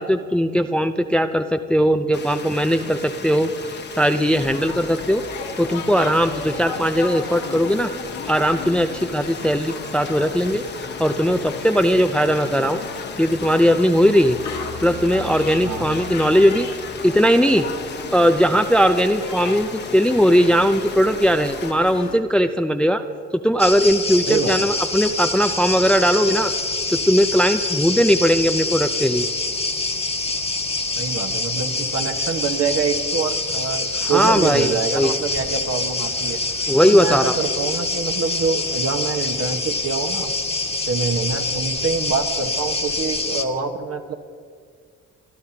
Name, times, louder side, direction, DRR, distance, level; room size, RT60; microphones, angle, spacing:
voice 1, 0.0-3.5 4.0-5.2 5.6-7.9 8.3-10.6 11.0-12.8 13.2-14.4 14.8-16.7 17.0-17.6 18.1-23.0 23.4-26.5 26.9-29.3 34.1-35.1 36.7-37.3, equal, 5° left, 8 dB, 0.5 m, -18 dB
sound 1, 2.1-21.7, left 5 dB, 35° left, 1.1 m, -36 dB
sound 2, 4.4-22.2, left 5 dB, 75° left, 1.8 m, -35 dB
sound 3, 23.6-43.4, left 3 dB, 20° left, 1.4 m, -25 dB
voice 2, 24.3-24.6 31.0-36.4 36.8-40.3 40.8-44.2, right 5 dB, 50° right, 4 dB, 1.3 m, -25 dB
27.5 x 11.5 x 2.9 m, 2.1 s
cardioid pair, 90°, 30 cm